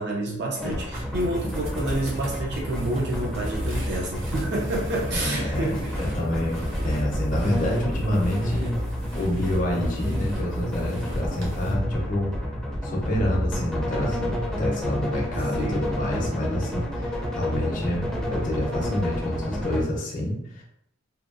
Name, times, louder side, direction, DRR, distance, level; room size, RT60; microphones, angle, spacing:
voice 1, 0.0-6.2 15.3-15.8, right 1 dB, 60° right, -2 dB, 0.4 m, -29 dB
sound 1, 0.6-19.8, equal, 5° left, 0.5 m, -29 dB
sound 2, 0.8-11.7, equal, 75° right, 0.8 m, -39 dB
voice 2, 5.1-8.7 9.1-12.3 12.8-20.6, left 1 dB, 40° left, -2 dB, 0.6 m, -28 dB
2.7 x 2.2 x 2.5 m, 0.76 s
head